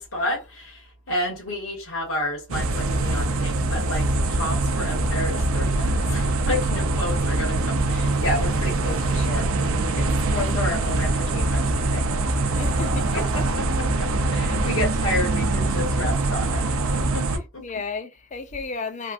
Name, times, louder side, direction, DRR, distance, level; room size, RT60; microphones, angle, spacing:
voice 1, 0.0-12.1 13.1-17.7, left 1 dB, 90° left, 1.5 m, -31 dB
sound 1, 2.5-17.4, right 2 dB, 80° right, 0.6 m, -23 dB
voice 2, 12.5-13.1 17.6-19.1, left 4 dB, 35° left, 0.4 m, -33 dB
3.4 x 2.6 x 2.4 m
head